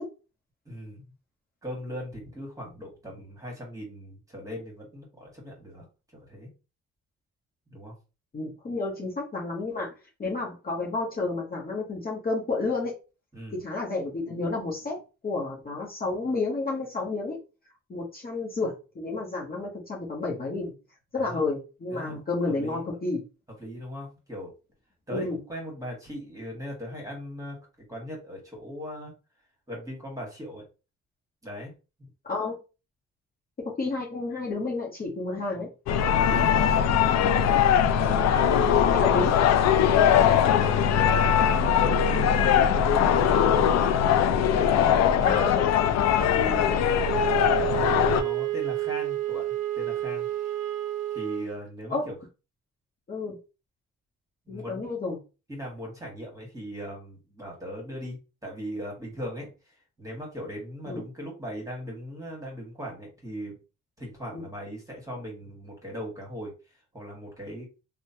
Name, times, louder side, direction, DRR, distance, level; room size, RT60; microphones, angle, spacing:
voice 1, 0.6-1.1 1.6-5.8 6.1-6.5 7.7-7.9 13.3-13.6 21.2-21.4 21.9-22.1 22.6-22.8 23.6-24.5 25.1-27.6 27.9-29.1 29.7-30.6 31.4-31.7 32.0-32.1 36.2-36.5 36.9-37.7 37.9-45.5 46.1-46.9 47.3-50.3 51.1-52.1 54.5-54.9 55.5-63.6 64.0-66.5 66.9-67.7, equal, 10° right, -1 dB, 1.5 m, -39 dB
voice 2, 8.3-9.9 10.2-12.9 13.6-17.4 17.9-20.7 21.1-23.2 25.1-25.4 32.2-32.5 33.6-35.7 36.3-36.4 38.9-39.3 45.2-45.7 51.9-52.1 53.1-53.3 54.5-55.2 60.9-61.0 64.3-64.4, left 3 dB, 30° left, -3 dB, 0.9 m, -31 dB
sound 1, 35.9-48.2, left 8 dB, 60° left, 0.4 m, -21 dB
Wind instrument woodwind instrument, 47.0-51.5, right 15 dB, 60° right, 0.5 m, -30 dB
3.0 x 2.1 x 2.8 m, 0.31 s
cardioid pair, 90°, 30 cm